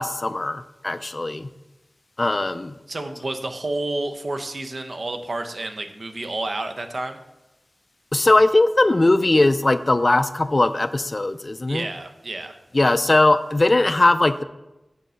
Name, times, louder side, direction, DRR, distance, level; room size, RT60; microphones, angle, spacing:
voice 1, 0.0-1.5 2.2-2.7 8.1-11.9 12.7-14.4, left 2 dB, 35° left, 12 dB, 0.4 m, -19 dB
voice 2, 2.9-7.2 11.7-12.5, right 2 dB, 55° right, 7 dB, 0.8 m, -30 dB
6.8 x 5.4 x 6.3 m, 0.98 s
wide cardioid pair, 85°, 0 cm